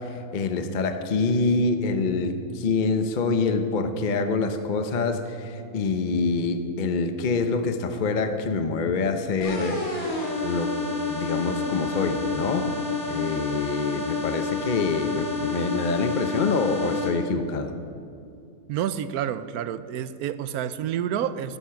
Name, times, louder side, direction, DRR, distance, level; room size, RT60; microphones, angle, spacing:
voice 1, 0.0-9.8 10.4-10.7 11.0-12.8 13.1-17.7, left 4 dB, 40° left, 8 dB, 0.7 m, -26 dB
sound 1, 9.4-17.1, left 4 dB, 65° left, 2.9 m, -29 dB
voice 2, 18.7-21.6, right 9 dB, 80° right, 14 dB, 1.1 m, -29 dB
13.0 x 12.5 x 5.9 m, 2.4 s
omnidirectional pair, 1.6 m